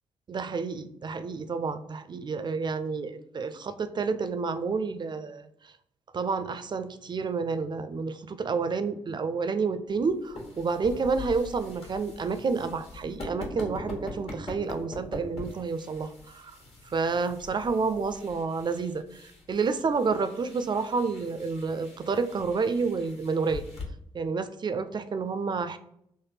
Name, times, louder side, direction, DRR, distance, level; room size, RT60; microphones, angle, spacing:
voice 1, 0.3-5.5 6.1-16.6 16.9-23.6 24.1-25.8, right 4 dB, 40° right, 11 dB, 0.4 m, -29 dB
sound 1, 9.9-23.8, left 2 dB, 55° left, 1.1 m, -43 dB
3.4 x 2.1 x 3.3 m, 0.72 s
hypercardioid pair, 40°, 12 cm